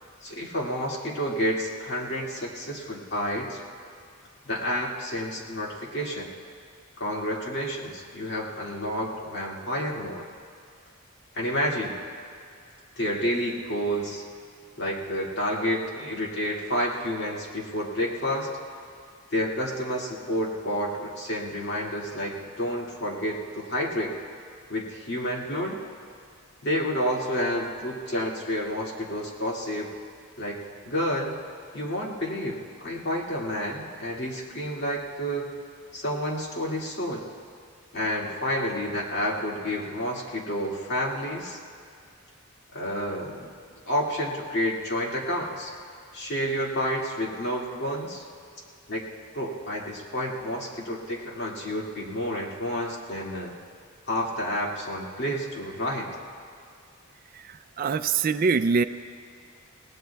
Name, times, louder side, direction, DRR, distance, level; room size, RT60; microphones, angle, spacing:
voice 1, 0.2-3.6 4.5-6.3 7.0-10.2 11.3-12.0 13.0-14.2 14.8-18.5 19.3-24.2 24.7-25.8 26.6-29.9 30.4-31.4 31.7-35.5 35.9-37.3 37.9-41.6 42.7-43.5 43.9-45.7 46.1-48.2 48.9-53.5 54.1-56.1, equal, 55° left, -3 dB, 2.1 m, -30 dB
voice 2, 57.8-58.8, right 5 dB, 45° right, 11 dB, 0.3 m, -23 dB
26.0 x 19.0 x 2.3 m, 2.2 s
head